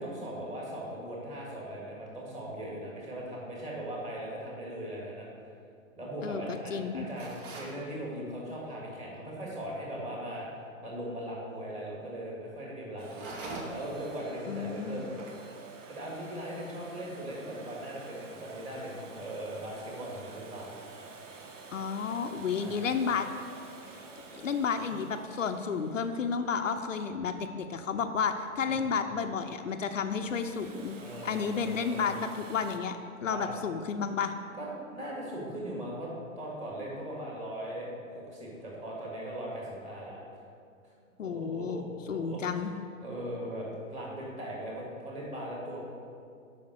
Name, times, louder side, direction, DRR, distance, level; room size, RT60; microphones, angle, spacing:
voice 1, 0.0-5.3 6.0-10.5 10.8-13.2 13.7-15.1 15.9-20.7 22.5-23.1 24.8-25.0 28.6-28.8 31.0-32.0 33.2-33.6 34.6-36.1 36.4-40.2 41.2-42.7 43.0-45.8, right 1 dB, 15° right, -4 dB, 2.3 m, -39 dB
voice 2, 6.2-7.1 14.5-15.0 21.7-23.3 24.3-31.0 31.2-33.0 33.2-34.3 41.2-41.8 42.1-42.7, left 6 dB, 65° left, 6 dB, 0.7 m, -31 dB
sound 1, 7.2-7.8 13.0-14.0, right 2 dB, 40° right, 1.5 m, -41 dB
Domestic sounds home sounds, 13.0-27.7 30.1-32.8, right 4 dB, 60° right, 1.2 m, -49 dB
8.6 x 5.8 x 6.4 m, 2.3 s
figure-of-eight pair, 120°, 41 cm